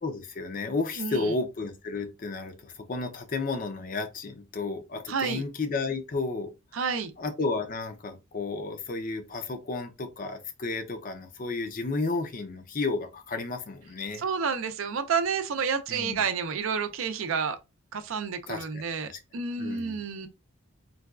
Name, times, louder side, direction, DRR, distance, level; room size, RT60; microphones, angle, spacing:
voice 1, 0.0-6.5 7.2-14.2 15.9-16.3 18.5-19.2 19.6-20.0, left 3 dB, 40° left, 0.4 m, -32 dB
voice 2, 1.0-1.3 5.1-5.4 6.7-7.1 14.2-17.6 17.9-20.3, right 6 dB, 65° right, 0.4 m, -30 dB
3.9 x 2.2 x 2.3 m
head